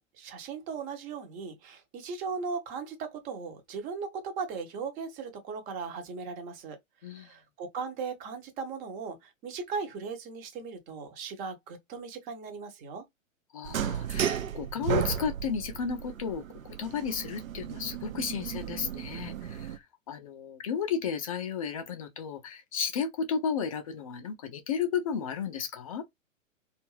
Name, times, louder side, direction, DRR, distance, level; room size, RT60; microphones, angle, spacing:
voice 1, 0.0-6.8 7.1-13.0, right 5 dB, 20° right, 0.6 m, -38 dB
voice 2, 13.5-26.0, left 7 dB, 30° left, 0.4 m, -33 dB
sound 1, 13.6-19.8, right 8 dB, 80° right, 0.5 m, -34 dB
2.5 x 2.4 x 3.0 m
figure-of-eight pair, 110°, 40 cm